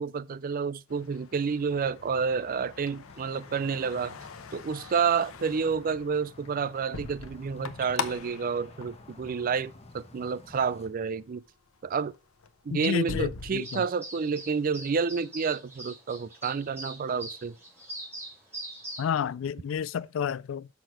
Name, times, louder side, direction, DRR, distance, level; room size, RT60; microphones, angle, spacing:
voice 1, 0.0-4.1 4.5-11.4 11.8-12.1 12.6-17.6, right 5 dB, 45° right, 0.4 m, -29 dB
sound 1, 0.9-9.9 10.3-10.8 11.3-11.5 11.8-13.5, left 4 dB, 90° left, 0.8 m, -42 dB
sound 2, 3.1-10.9, left 2 dB, 30° left, 1.1 m, -53 dB
voice 2, 12.7-13.8 19.0-20.7, left 8 dB, 65° left, 0.3 m, -30 dB
sound 3, 13.6-19.1, right 1 dB, 10° right, 3.2 m, -42 dB
6.6 x 6.0 x 4.5 m
head